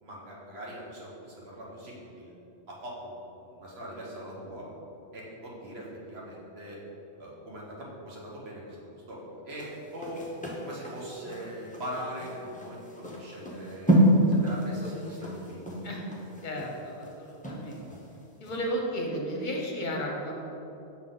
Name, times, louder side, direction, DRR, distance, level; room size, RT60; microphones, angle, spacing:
voice 1, 0.0-2.4 2.7-4.7 5.1-6.8 7.2-10.2 10.6-15.8, equal, 65° right, -5 dB, 1.4 m, -41 dB
sound 1, 9.5-18.1 18.4-18.6, right 1 dB, 10° left, 0.5 m, -28 dB
voice 2, 16.4-17.8 18.4-20.3, equal, 50° left, -1 dB, 0.9 m, -33 dB
6.4 x 3.9 x 3.9 m, 3.0 s
omnidirectional pair, 1.1 m